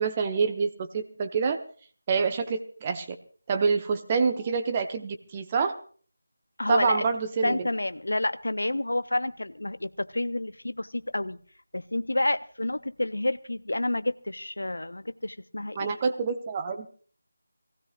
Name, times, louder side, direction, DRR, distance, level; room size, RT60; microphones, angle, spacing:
voice 1, 0.0-1.6 2.1-3.1 3.5-5.7 6.7-7.6 15.8-16.9, right 5 dB, 20° right, 5 dB, 0.8 m, -27 dB
voice 2, 6.6-7.1 7.4-11.4 11.7-16.0, left 1 dB, 65° left, 13 dB, 0.7 m, -29 dB
24.0 x 16.0 x 2.4 m, 0.43 s
figure-of-eight pair, 160°, 0 cm